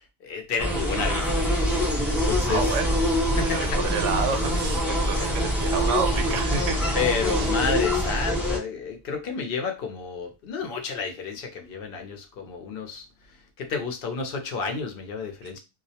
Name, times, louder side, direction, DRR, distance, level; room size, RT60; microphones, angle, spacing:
voice 1, 0.2-1.5 2.3-2.6 3.4-3.6 4.8-5.5 6.9-13.0 13.6-15.6, left 5 dB, 60° left, 0.7 m, -30 dB
sound 1, 0.6-8.6, equal, ahead, 0.5 m, -24 dB
voice 2, 2.4-7.5, right 6 dB, 75° right, 0.9 m, -30 dB
2.3 x 2.0 x 2.7 m
omnidirectional pair, 1.3 m